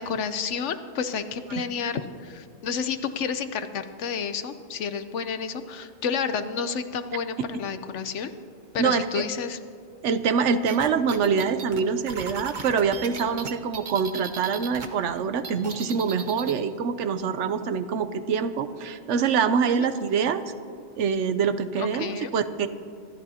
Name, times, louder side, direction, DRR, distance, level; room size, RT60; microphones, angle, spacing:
voice 1, 0.0-8.3 8.7-9.6 19.7-19.9 21.8-22.3, left 6 dB, 80° left, 10 dB, 1.1 m, -30 dB
voice 2, 8.8-9.2 10.0-20.4 21.0-22.7, right 6 dB, 80° right, 11 dB, 1.0 m, -25 dB
sound 1, 10.7-14.9 15.2-16.6, right 4 dB, 45° right, 1.0 m, -36 dB
25.0 x 13.5 x 2.8 m, 2.3 s
omnidirectional pair, 1.2 m